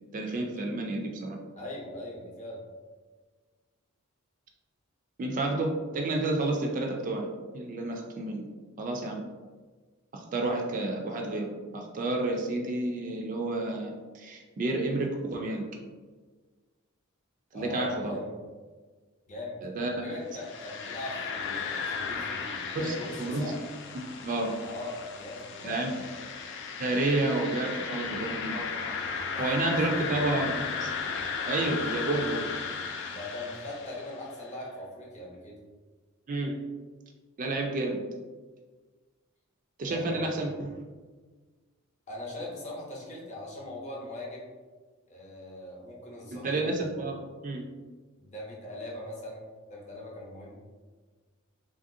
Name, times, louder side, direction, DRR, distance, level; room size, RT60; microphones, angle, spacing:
voice 1, 0.1-1.4 5.2-7.3 7.5-8.4 8.8-9.2 10.1-11.5 11.7-15.7 17.5-18.2 19.6-19.9 22.7-23.5 23.9-24.6 25.6-26.0 26.8-28.9 29.4-30.9 31.5-32.5 36.3-36.6 37.4-38.0 39.8-40.8 46.3-47.7, right 2 dB, 40° right, 2 dB, 0.3 m, -30 dB
voice 2, 1.5-2.6 17.5-18.3 19.3-19.6 19.9-23.5 24.6-26.3 27.9-28.2 29.3-29.4 29.7-30.1 33.1-35.6 39.9-40.4 42.1-44.5 45.1-46.9 48.2-49.4 49.7-50.5, left 1 dB, 35° left, -3 dB, 0.7 m, -40 dB
sound 1, 20.3-34.3, left 5 dB, 55° left, 0.3 m, -35 dB
3.1 x 2.4 x 2.6 m, 1.4 s
head